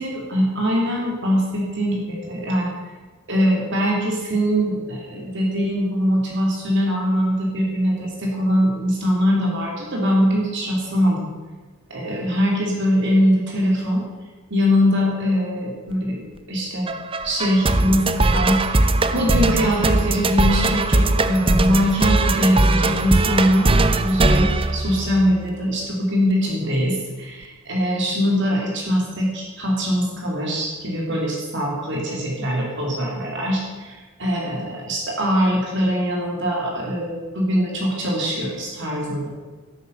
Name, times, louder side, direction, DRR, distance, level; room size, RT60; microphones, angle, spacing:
voice 1, 0.0-2.7 3.3-11.3 11.9-14.0 14.5-16.9 17.2-23.7 24.0-39.3, equal, 55° right, -2 dB, 3.4 m, -22 dB
sound 1, 16.9-25.4, right 2 dB, 25° right, 0.7 m, -20 dB
12.0 x 11.5 x 8.3 m, 1.3 s
head